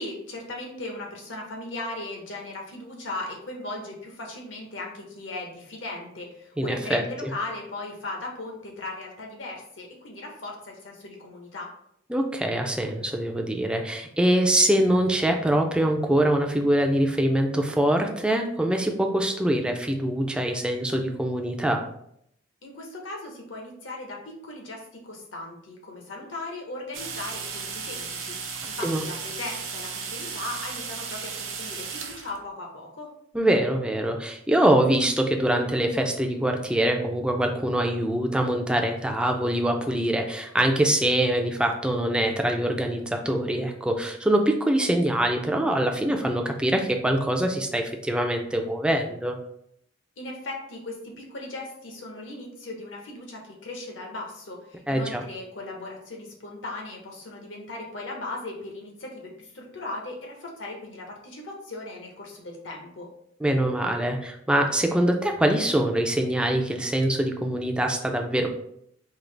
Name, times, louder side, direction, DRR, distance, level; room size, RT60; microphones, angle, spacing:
voice 1, 0.0-11.7 22.6-33.1 50.2-63.1, left 2 dB, 70° left, -1 dB, 1.1 m, -38 dB
voice 2, 6.6-7.3 12.1-21.9 28.8-29.0 33.3-49.4 54.9-55.2 63.4-68.5, right 1 dB, 5° right, 3 dB, 0.4 m, -24 dB
sound 1, 26.9-32.4, right 5 dB, 80° right, 0.7 m, -35 dB
3.8 x 2.9 x 3.3 m, 0.72 s
head